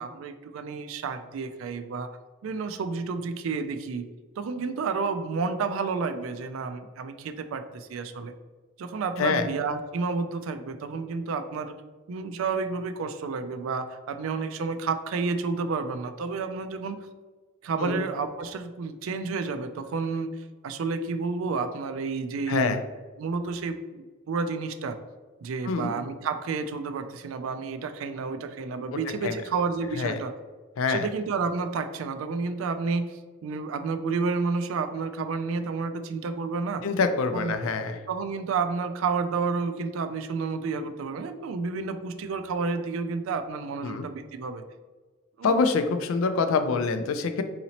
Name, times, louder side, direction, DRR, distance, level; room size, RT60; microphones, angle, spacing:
voice 1, 0.0-2.1 2.4-4.1 4.4-8.3 8.8-11.7 12.1-17.0 17.6-20.3 20.6-22.8 23.2-25.0 25.4-30.3 30.9-36.8 37.3-37.6 38.1-44.6 45.4-45.6, right 4 dB, 75° right, 9 dB, 0.3 m, -30 dB
voice 2, 22.5-22.8 25.6-25.9 29.2-29.4 30.0-30.2 30.8-31.1 36.8-38.0 43.8-44.1 45.4-47.4, left 4 dB, 80° left, 8 dB, 0.4 m, -25 dB
4.0 x 2.9 x 2.8 m, 1.3 s
head